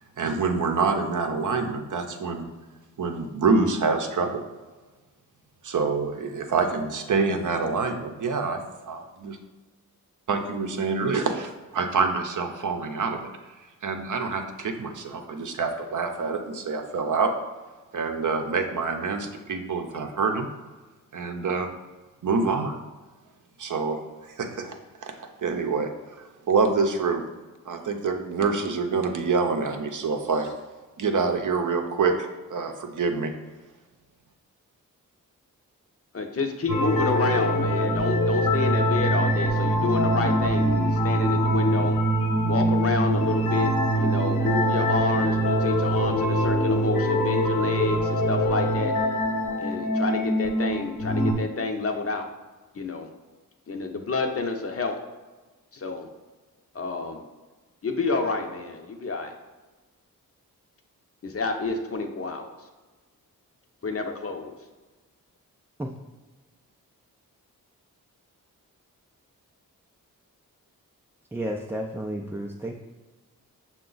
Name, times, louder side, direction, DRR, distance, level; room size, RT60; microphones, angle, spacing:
voice 1, 0.2-2.4 3.0-4.4 5.6-9.4 10.3-13.3 13.8-17.3 17.9-20.5 21.1-21.7 22.2-22.7 23.6-24.7 25.0-26.2 26.5-27.2 27.7-30.5 31.0-33.3, right 4 dB, 55° right, 5 dB, 0.6 m, -26 dB
voice 2, 36.1-41.9 42.5-48.9 49.6-52.3 52.7-53.1 53.7-55.0 55.7-56.1 56.7-57.2 57.8-59.3 61.2-62.6 63.8-64.5, left 4 dB, 40° left, 4 dB, 0.6 m, -29 dB
sound 1, 36.7-51.3, equal, 75° left, 1.0 m, -23 dB
voice 3, 71.3-72.7, equal, 5° right, -1 dB, 0.3 m, -32 dB
5.8 x 2.2 x 3.9 m, 1.2 s
cardioid pair, 45°, 37 cm